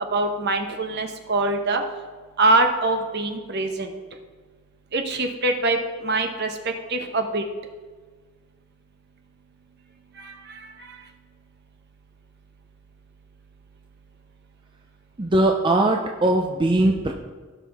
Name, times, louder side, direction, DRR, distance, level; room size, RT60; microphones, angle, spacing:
voice 1, 0.1-1.8 2.4-3.9 4.9-7.4 10.2-11.0, right 2 dB, 50° right, 5 dB, 1.0 m, -24 dB
voice 2, 15.2-17.1, right 1 dB, 20° right, 2 dB, 0.5 m, -20 dB
16.0 x 5.9 x 3.5 m, 1.5 s
head